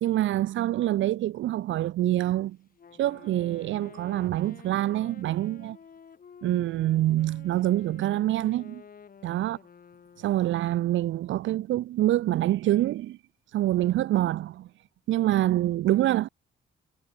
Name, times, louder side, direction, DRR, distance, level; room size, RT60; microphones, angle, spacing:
voice 1, 0.0-2.6 3.0-5.8 6.4-8.8 9.2-9.6 10.2-13.2 13.5-14.7 15.1-16.3, right 14 dB, 75° right, 0.8 m, -26 dB
Wind instrument woodwind instrument, 2.8-10.6, left 6 dB, 45° left, 6.7 m, -51 dB
cardioid pair, 90°, 20 cm